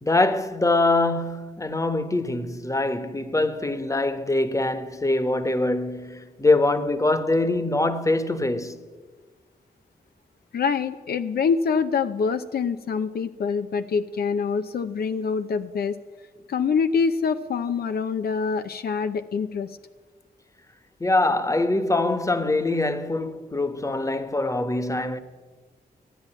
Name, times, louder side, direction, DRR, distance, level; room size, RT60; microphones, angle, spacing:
voice 1, 0.0-8.8 21.0-25.2, left 2 dB, 20° left, 1.3 m, -23 dB
voice 2, 10.5-16.0 16.5-19.8, left 5 dB, 75° left, 0.6 m, -25 dB
13.5 x 9.0 x 9.0 m
cardioid pair, 55°, 16 cm